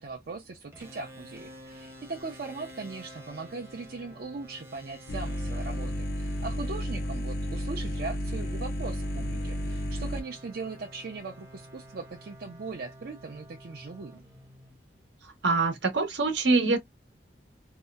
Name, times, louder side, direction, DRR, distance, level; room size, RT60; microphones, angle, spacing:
voice 1, 0.0-14.3, right 4 dB, 55° right, 0.5 m, -39 dB
sound 1, 0.7-15.3, equal, 15° right, 0.7 m, -50 dB
sound 2, 5.1-10.2, equal, 55° left, 0.5 m, -32 dB
voice 2, 15.2-16.8, right 3 dB, 75° right, 0.9 m, -25 dB
2.7 x 2.0 x 2.3 m
head